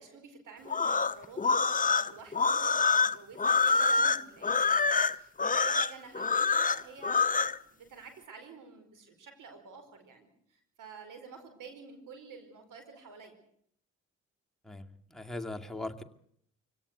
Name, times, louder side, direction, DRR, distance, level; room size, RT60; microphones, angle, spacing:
voice 1, 0.0-13.4, right 5 dB, 65° right, 7 dB, 4.9 m, -49 dB
sound 1, 0.7-7.6, left 4 dB, 25° left, 0.9 m, -26 dB
voice 2, 14.6-16.0, left 2 dB, ahead, 2 dB, 2.4 m, -40 dB
25.5 x 17.5 x 8.2 m, 0.68 s
hypercardioid pair, 45°, 33 cm